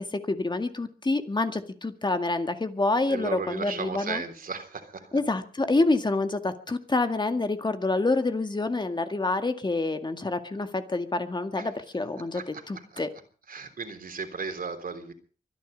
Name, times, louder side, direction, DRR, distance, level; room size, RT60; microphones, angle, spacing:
voice 1, 0.0-4.2 5.1-13.1, left 2 dB, 25° left, 8 dB, 1.9 m, -27 dB
voice 2, 3.1-5.2 11.6-11.7 12.3-13.0 13.5-15.1, right 5 dB, 60° right, 7 dB, 3.5 m, -36 dB
24.0 x 10.5 x 5.2 m, 0.40 s
cardioid pair, 90°, 16 cm